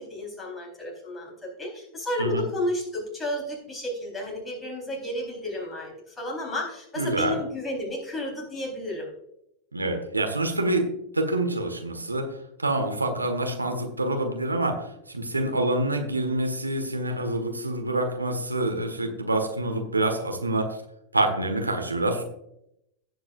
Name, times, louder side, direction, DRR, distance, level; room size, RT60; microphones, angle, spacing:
voice 1, 0.0-9.1, left 1 dB, 10° left, -1 dB, 3.9 m, -32 dB
voice 2, 7.0-7.4 9.7-10.9 11.1-12.3 12.6-20.7 21.1-22.2, right 2 dB, 80° right, 4 dB, 1.5 m, -26 dB
17.0 x 8.0 x 2.5 m, 0.78 s
figure-of-eight pair, 90°, 0 cm